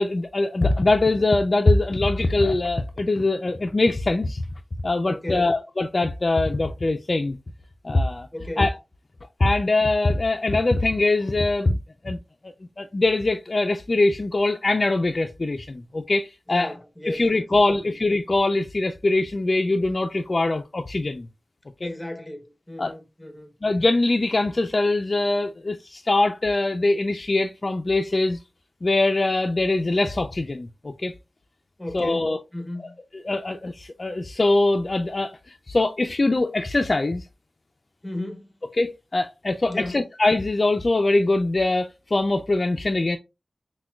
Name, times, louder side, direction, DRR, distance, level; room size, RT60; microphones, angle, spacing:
voice 1, 0.0-4.5 4.8-7.4 7.8-8.3 8.6-8.7 9.4-11.8 12.0-12.2 12.8-16.7 17.1-21.3 21.8-21.9 22.8-22.9 23.6-28.4 28.8-31.1 31.9-32.4 33.2-37.2 38.8-43.2, left 2 dB, 50° left, 0.3 m, -22 dB
voice 2, 5.0-5.5 8.3-8.6 16.5-18.0 21.8-23.5 31.8-33.0 38.0-38.5 39.7-40.0, left 1 dB, 15° left, 1.0 m, -34 dB
5.9 x 2.2 x 2.2 m
wide cardioid pair, 55°, 0 cm